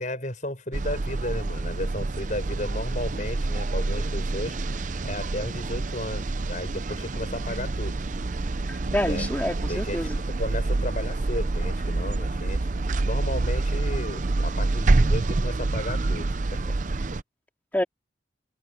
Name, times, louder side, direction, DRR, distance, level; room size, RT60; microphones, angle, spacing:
voice 1, 0.0-4.6 5.0-8.0 9.1-9.3 9.7-12.7 13.0-16.7, left 1 dB, 40° left, 7.3 m, -34 dB
sound 1, 0.7-17.2, right 2 dB, 40° right, 0.5 m, -27 dB
voice 2, 8.7-10.2 17.7-17.8, left 1 dB, 10° left, 2.3 m, -27 dB
head